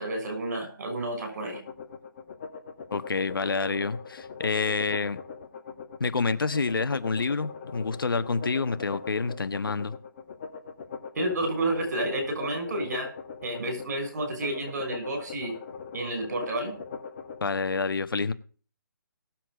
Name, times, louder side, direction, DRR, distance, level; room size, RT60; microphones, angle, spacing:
voice 1, 0.0-1.6 11.1-13.1 13.4-15.5 15.9-16.7, right 1 dB, 50° right, 6.2 m, -30 dB
sound 1, 1.4-17.4, left 5 dB, 35° left, 1.8 m, -41 dB
voice 2, 2.9-5.2 6.0-9.9 17.4-18.3, left 4 dB, 80° left, 1.3 m, -28 dB
18.0 x 7.6 x 5.0 m
hypercardioid pair, 160°, 11 cm